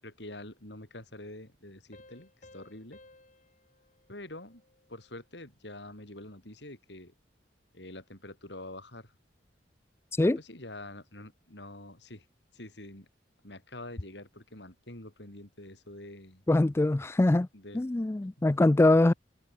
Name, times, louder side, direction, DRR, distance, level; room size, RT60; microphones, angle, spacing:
voice 1, 0.0-3.0 4.1-4.6 4.9-7.1 7.7-9.1 10.2-12.3 12.5-13.1 13.4-16.4 17.5-17.8 18.4-18.7, left 1 dB, 65° left, 6.6 m, -46 dB
Piano, 1.9-5.2, left 2 dB, 45° left, 6.5 m, -58 dB
voice 2, 16.5-17.5 17.7-19.1, left 2 dB, 15° left, 0.3 m, -23 dB
head